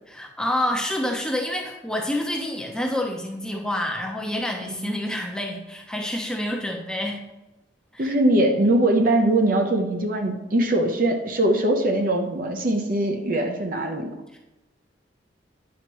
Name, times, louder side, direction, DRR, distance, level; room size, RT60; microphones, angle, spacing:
voice 1, 0.1-7.2 7.9-8.1 14.3-14.4, left 1 dB, 5° left, 1 dB, 0.7 m, -28 dB
voice 2, 8.0-14.1, right 1 dB, 45° right, 4 dB, 0.7 m, -21 dB
9.3 x 5.7 x 3.0 m, 1.0 s
head